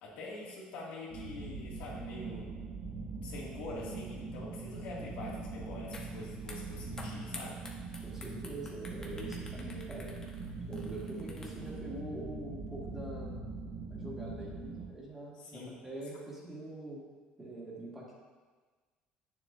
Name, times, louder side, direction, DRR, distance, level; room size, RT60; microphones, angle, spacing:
voice 1, 0.0-2.5 3.2-7.6 15.4-15.8, left 2 dB, 85° left, -5 dB, 2.3 m, -45 dB
sound 1, 1.1-14.9, right 3 dB, 70° right, 1.0 m, -42 dB
voice 2, 5.0-5.3 8.0-10.1 10.7-13.4 13.9-17.0 17.4-18.2, right 1 dB, 15° right, -5 dB, 2.0 m, -44 dB
sound 2, 5.9-6.1 6.4-11.8, left 2 dB, 25° left, 1.0 m, -49 dB
8.9 x 7.0 x 2.7 m, 1.4 s
cardioid pair, 130°, 3 cm